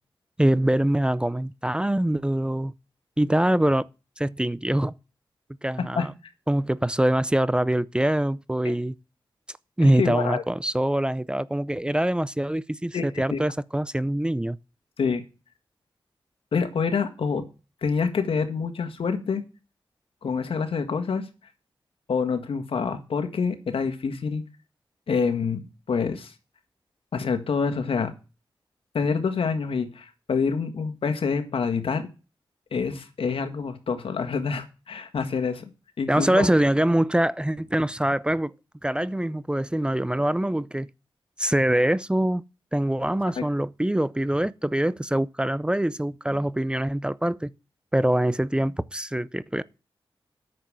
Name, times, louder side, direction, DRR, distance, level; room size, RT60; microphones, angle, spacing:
voice 1, 0.4-2.7 3.2-3.8 4.2-4.9 5.6-6.1 6.5-8.9 9.8-14.6 36.1-38.5 38.8-40.9 41.4-42.4 42.7-47.5 47.9-49.6, right 1 dB, 10° right, 0.5 m, -24 dB
voice 2, 9.8-10.4 12.9-13.1 13.3-13.4 15.0-15.2 16.5-17.4 17.8-19.4 20.2-21.3 22.1-24.4 25.1-26.3 27.1-28.1 28.9-32.1 32.7-35.7 36.0-36.5 43.4-43.5, left 5 dB, 85° left, 1.7 m, -27 dB
9.4 x 6.9 x 7.5 m
wide cardioid pair, 80°, 9 cm